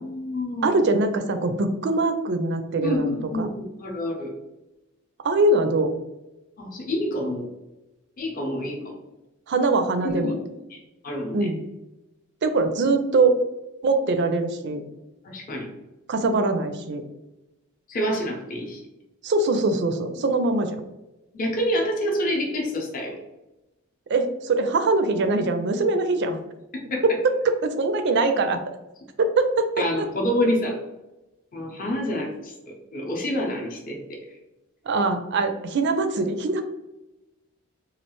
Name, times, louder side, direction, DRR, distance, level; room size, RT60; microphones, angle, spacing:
voice 1, 0.0-0.8 2.8-4.3 6.6-7.5 8.2-8.9 10.0-10.4 10.7-10.8 11.0-11.5 15.2-15.7 17.9-18.8 21.3-23.2 26.9-27.0 29.8-30.8 31.5-34.0, left 1 dB, 40° left, 0 dB, 0.6 m, -27 dB
voice 2, 0.6-3.5 5.2-5.9 9.5-10.4 11.3-11.6 12.4-13.4 13.8-14.8 16.1-17.0 19.2-20.8 24.1-26.4 27.0-28.6 29.2-30.1 34.9-36.6, right 3 dB, 50° right, 8 dB, 0.4 m, -22 dB
3.1 x 2.4 x 3.0 m, 1.0 s
head